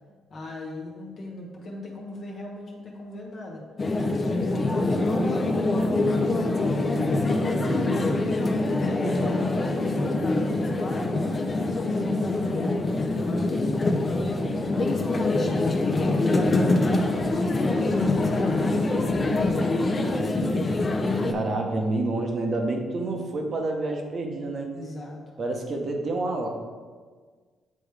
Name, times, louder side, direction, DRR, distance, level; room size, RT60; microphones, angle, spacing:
voice 1, 0.3-3.6 4.1-6.4 7.0-9.4 9.8-15.5 16.2-19.8 24.7-25.2, left 2 dB, 55° left, -2 dB, 1.3 m, -38 dB
sound 1, 3.8-21.3, left 2 dB, 35° left, 0.6 m, -24 dB
voice 2, 7.5-8.0 21.3-24.7 25.4-26.5, right 2 dB, 50° right, 2 dB, 0.9 m, -28 dB
8.4 x 3.5 x 3.4 m, 1.5 s
cardioid pair, 90°, 0 cm